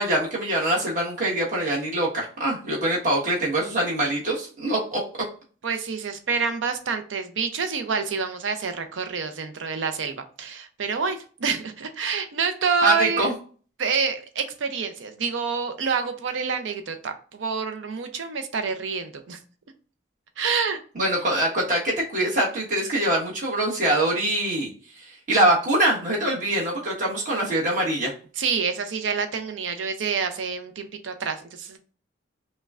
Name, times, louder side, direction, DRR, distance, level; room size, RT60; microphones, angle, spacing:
voice 1, 0.0-5.0 12.8-13.3 20.9-24.7 25.0-28.1, right 1 dB, 40° right, -4 dB, 1.3 m, -24 dB
voice 2, 5.6-13.3 13.8-19.4 20.4-20.8 28.4-31.8, right 5 dB, 85° right, 8 dB, 0.5 m, -27 dB
5.3 x 2.2 x 2.4 m, 0.41 s
head